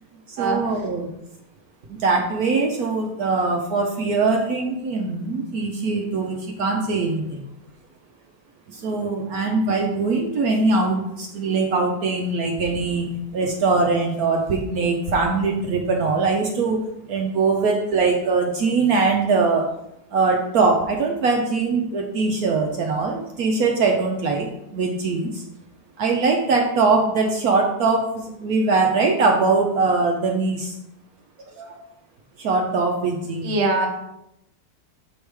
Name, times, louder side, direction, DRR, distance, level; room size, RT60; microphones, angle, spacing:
voice 1, 0.3-1.1 1.9-7.4 8.7-16.8 17.1-19.7 20.1-25.4 26.0-30.7 31.6-31.8 32.4-33.5 33.8-33.9, right 3 dB, 70° right, 1 dB, 1.1 m, -22 dB
voice 2, 33.4-33.9, right 2 dB, 45° right, 2 dB, 1.1 m, -22 dB
7.0 x 4.8 x 3.3 m, 0.83 s
omnidirectional pair, 1.7 m